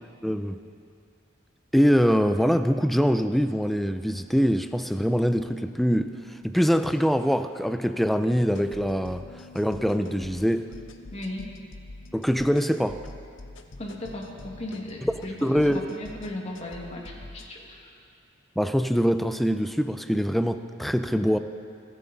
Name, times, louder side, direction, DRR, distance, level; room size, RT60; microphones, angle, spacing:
voice 1, 0.2-0.6 1.7-6.1 6.4-9.2 9.5-10.7 12.1-13.0 15.0-15.1 15.4-15.9 18.6-21.4, equal, ahead, 9 dB, 0.4 m, -23 dB
sound 1, 8.5-17.5, left 2 dB, 70° left, 0.8 m, -45 dB
voice 2, 11.1-11.5 13.8-17.9, left 1 dB, 35° left, -1 dB, 1.9 m, -36 dB
27.5 x 9.4 x 4.0 m, 2.5 s
head